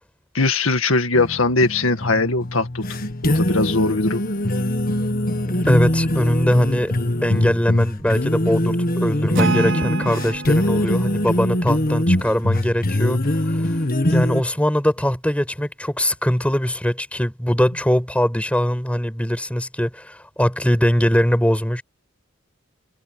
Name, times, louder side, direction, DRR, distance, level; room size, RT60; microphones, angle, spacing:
voice 1, 0.3-4.2 9.5-9.6, left 3 dB, 90° left, 2.0 m, -21 dB
sound 1, 1.1-14.4, left 1 dB, 45° left, 1.6 m, -22 dB
voice 2, 5.7-6.9 7.2-13.2 13.5-13.8 14.1-21.8, equal, 5° left, 5.2 m, -21 dB
Acoustic guitar / Strum, 9.3-12.8, right 3 dB, 65° right, 5.1 m, -28 dB
head